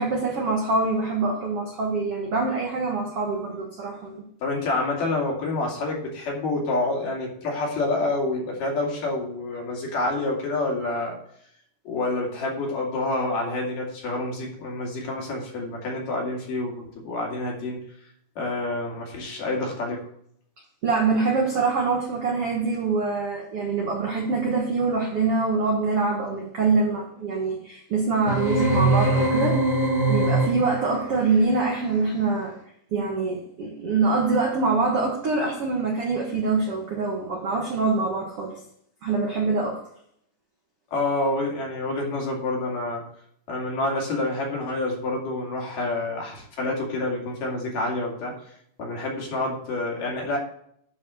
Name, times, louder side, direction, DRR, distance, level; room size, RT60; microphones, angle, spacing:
voice 1, 0.0-4.2 20.8-29.8 30.1-32.6 32.9-38.6 39.0-39.8, right 3 dB, 75° right, -1 dB, 1.3 m, -24 dB
voice 2, 4.4-11.2 11.9-17.8 18.4-20.1 40.9-43.0 43.5-48.3 48.8-50.4, left 2 dB, 55° left, -1 dB, 3.7 m, -28 dB
sound 1, 28.3-30.9, right 2 dB, 30° left, 2.7 m, -22 dB
11.0 x 4.8 x 6.5 m, 0.66 s
omnidirectional pair, 5.0 m